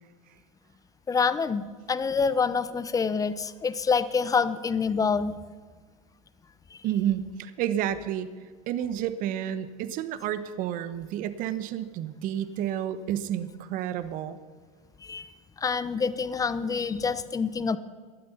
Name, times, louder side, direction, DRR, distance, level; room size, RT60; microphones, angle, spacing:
voice 1, 1.1-5.4 6.7-6.8 15.0-15.3 15.6-17.8, left 5 dB, 20° left, 14 dB, 0.9 m, -26 dB
voice 2, 6.8-8.3 8.7-14.4, right 10 dB, 50° right, 13 dB, 1.1 m, -30 dB
18.5 x 13.0 x 5.7 m, 1.5 s
hypercardioid pair, 100°, 18 cm